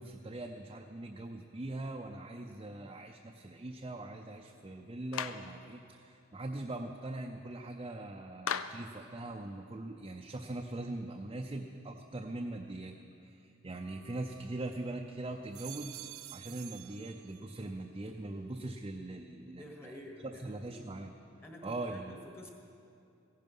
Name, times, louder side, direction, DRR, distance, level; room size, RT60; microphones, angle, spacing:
voice 1, 0.0-13.0 13.2-15.9 16.3-19.9 20.4-21.1 21.6-22.2, right 2 dB, 25° right, 2 dB, 0.6 m, -41 dB
Clapping, 5.1-5.5 8.5-8.9, left 8 dB, 90° left, 0.5 m, -35 dB
sound 1, 13.7-14.9 15.3-17.7 18.1-18.7, right 16 dB, 85° right, 0.3 m, -50 dB
voice 2, 19.4-20.8 21.4-22.5, left 1 dB, 10° left, 1 dB, 1.2 m, -50 dB
15.0 x 11.0 x 5.5 m, 2.6 s
head